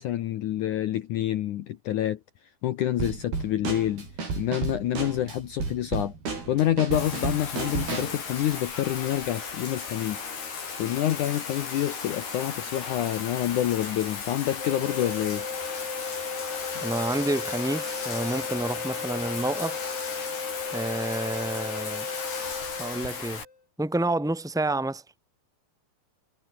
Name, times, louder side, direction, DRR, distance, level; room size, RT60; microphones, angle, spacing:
voice 1, 0.0-2.2 2.6-4.1 4.4-6.1 6.5-10.3 10.8-15.4 16.7-16.8, left 12 dB, 80° left, 1.8 m, -27 dB
Drum kit / Snare drum, 3.0-8.2, right 4 dB, 60° right, 9.0 m, -33 dB
Bathtub (filling or washing), 6.9-23.4, left 5 dB, 60° left, 7.6 m, -36 dB
sound 1, 14.6-23.5, left 4 dB, 35° left, 4.7 m, -36 dB
voice 2, 16.8-19.8 20.7-22.1 22.8-23.4 23.8-25.0, right 2 dB, ahead, 5.8 m, -29 dB
omnidirectional pair, 5.1 m